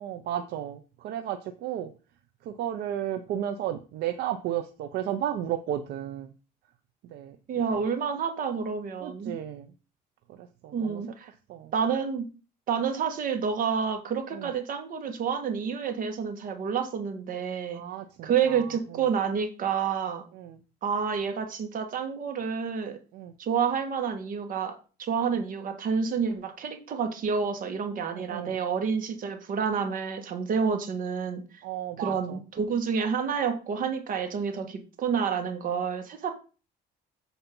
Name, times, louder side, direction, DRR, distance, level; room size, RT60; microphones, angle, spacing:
voice 1, 0.0-1.9 2.4-6.3 7.1-7.4 7.7-7.8 9.0-9.7 10.3-11.0 11.5-11.7 14.3-14.5 17.7-18.7 20.3-20.6 23.1-23.3 28.1-28.6 30.6-30.8 31.6-32.4, right 11 dB, 75° right, 8 dB, 0.7 m, -34 dB
voice 2, 7.5-9.3 10.7-11.3 11.7-12.3 12.7-17.8 18.2-20.2 20.8-23.0 23.4-31.6 32.0-36.3, right 6 dB, 55° right, 5 dB, 1.7 m, -29 dB
7.1 x 4.2 x 5.3 m, 0.34 s
cardioid pair, 110°, 17 cm